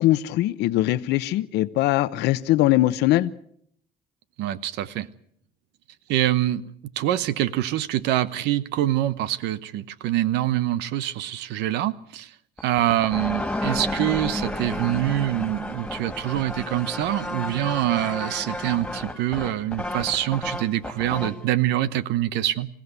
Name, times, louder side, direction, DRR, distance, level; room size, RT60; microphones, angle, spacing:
voice 1, 0.0-3.3, left 15 dB, 85° left, 13 dB, 0.9 m, -21 dB
voice 2, 4.4-5.1 6.1-6.6 7.0-12.3 12.6-22.7, right 13 dB, 90° right, 15 dB, 1.0 m, -25 dB
sound 1, 12.6-21.4, left 1 dB, 5° left, 2.5 m, -32 dB
26.5 x 16.0 x 8.1 m, 0.68 s
cardioid pair, 110°, 17 cm